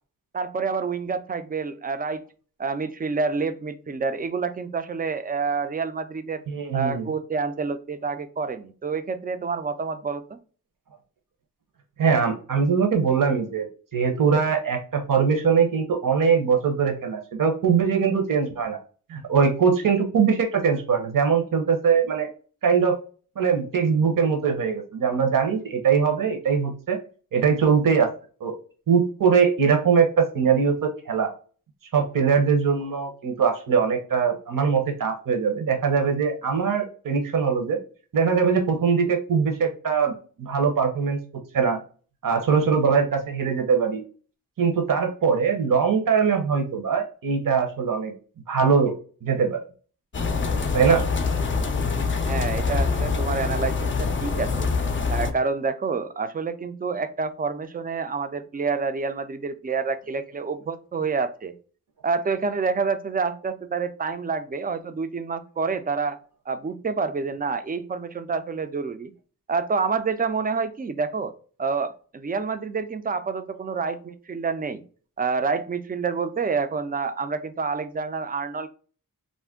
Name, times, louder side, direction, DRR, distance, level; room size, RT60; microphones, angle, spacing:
voice 1, 0.3-2.2 2.6-6.4 6.7-10.4 52.1-54.7 55.1-61.5 62.0-66.2 66.5-69.1 69.5-71.3 71.6-74.8 75.2-78.7, right 4 dB, 25° right, 11 dB, 0.4 m, -28 dB
voice 2, 6.5-7.1 12.0-13.7 13.9-18.8 19.1-22.3 22.6-23.0 23.4-27.0 27.3-28.1 28.4-28.5 28.9-31.3 31.9-37.8 38.1-40.1 40.4-41.2 41.5-41.8 42.2-44.0 44.6-48.1 48.5-48.9 49.2-49.6 50.7-51.1, right 6 dB, 60° right, 3 dB, 0.8 m, -22 dB
sound 1, 50.1-55.3, left 4 dB, 35° left, 0.4 m, -25 dB
2.5 x 2.1 x 3.5 m, 0.39 s
cardioid pair, 45°, 37 cm